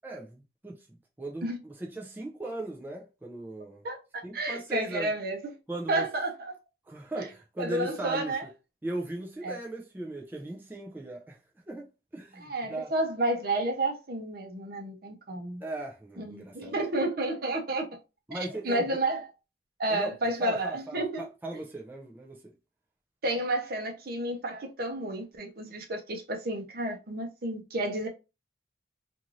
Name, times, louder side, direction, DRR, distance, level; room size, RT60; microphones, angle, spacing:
voice 1, 0.0-0.8 1.2-3.8 4.2-5.1 5.7-6.1 6.9-8.3 8.8-11.4 11.7-12.9 15.6-16.7 18.3-19.0 19.9-20.1 20.4-22.5, right 2 dB, 10° right, 0.4 m, -38 dB
voice 2, 3.8-5.4 5.9-6.6 7.2-7.3 7.6-8.4 9.4-9.6 12.4-15.6 16.2-17.9 18.3-19.3 19.8-21.2 23.2-28.1, right 1 dB, 60° right, 0.7 m, -31 dB
2.6 x 2.5 x 3.0 m
head